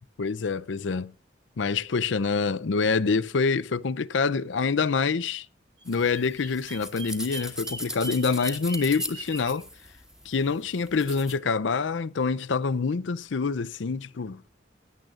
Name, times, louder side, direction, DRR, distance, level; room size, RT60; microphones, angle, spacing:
voice 1, 0.2-1.1 1.6-5.5 5.9-9.7 10.3-14.5, left 4 dB, 80° left, 0.6 m, -26 dB
sound 1, 5.8-11.3, equal, 5° right, 1.5 m, -39 dB
Bird vocalization bird call bird song, 5.8-9.6, right 1 dB, 25° right, 2.1 m, -42 dB
16.5 x 10.5 x 2.5 m
head